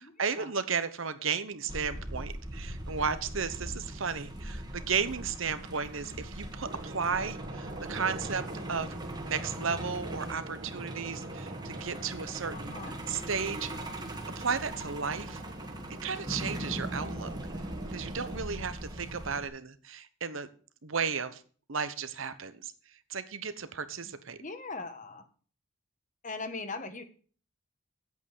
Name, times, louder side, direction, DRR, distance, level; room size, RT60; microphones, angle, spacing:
voice 1, 0.0-8.9 9.2-13.9 14.4-15.4 16.0-17.3 17.9-20.5 20.8-21.4 21.7-22.7 23.1-24.4, right 6 dB, 75° right, 12 dB, 1.0 m, -34 dB
Truck, 1.7-19.5, right 1 dB, 20° right, 1.5 m, -40 dB
sound 1, 6.6-18.4, right 1 dB, 40° right, 1.7 m, -44 dB
voice 2, 12.5-12.9 24.4-25.2 26.2-27.0, left 3 dB, 40° left, 9 dB, 1.3 m, -39 dB
8.7 x 8.3 x 7.2 m, 0.42 s
head